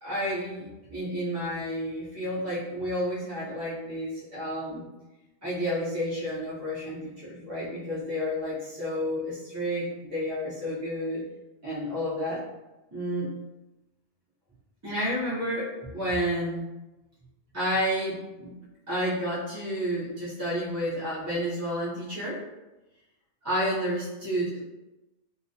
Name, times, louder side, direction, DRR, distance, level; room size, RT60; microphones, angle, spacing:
voice 1, 0.0-4.8 5.4-11.2 11.6-12.4 12.9-13.3 14.8-16.6 17.5-18.5 18.9-22.4 23.4-24.6, equal, 20° right, -11 dB, 0.4 m, -30 dB
2.2 x 2.1 x 2.6 m, 1.0 s
omnidirectional pair, 1.2 m